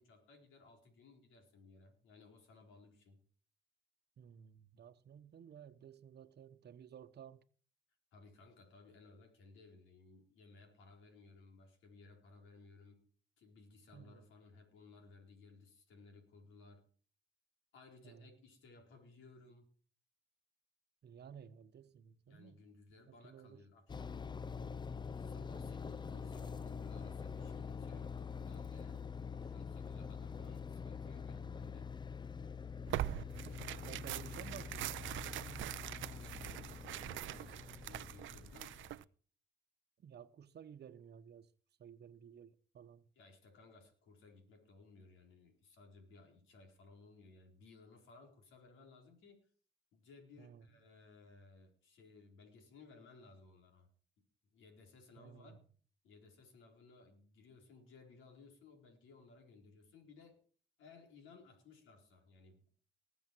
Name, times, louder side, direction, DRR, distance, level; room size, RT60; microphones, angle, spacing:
voice 1, 0.0-3.2 8.1-13.0 13.4-16.8 17.7-19.7 22.3-24.2 25.2-29.0 29.3-31.9 36.0-39.1 43.2-49.5 49.9-53.9 54.5-55.6 56.0-60.4 60.8-62.6, left 3 dB, 80° left, 4.2 m, -60 dB
voice 2, 4.2-7.4 13.9-14.2 18.0-18.3 21.0-22.6 23.1-23.7 33.1-35.7 40.0-41.5 41.8-43.1 50.4-50.7 55.2-55.6, right 8 dB, 55° right, 1.1 m, -55 dB
sound 1, 23.9-39.0, left 6 dB, 20° left, 0.5 m, -45 dB
Tearing, 32.9-39.0, right 15 dB, 75° right, 0.5 m, -43 dB
20.0 x 7.3 x 4.6 m
cardioid pair, 90°, 20 cm